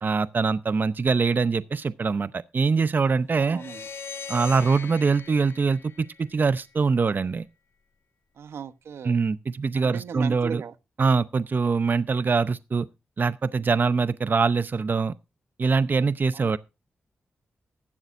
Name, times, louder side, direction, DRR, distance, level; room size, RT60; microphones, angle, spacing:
voice 1, 0.0-3.6 4.3-7.4 9.0-10.6 11.0-12.9 13.2-15.1 15.6-16.6, right 4 dB, 50° right, 0.7 m, -23 dB
voice 2, 3.3-3.9 8.4-9.2 9.7-10.7 16.3-16.6, right 7 dB, 85° right, 1.0 m, -37 dB
sound 1, 3.4-6.7, left 5 dB, 75° left, 2.1 m, -40 dB
15.5 x 12.0 x 2.6 m
cardioid pair, 60°, 4 cm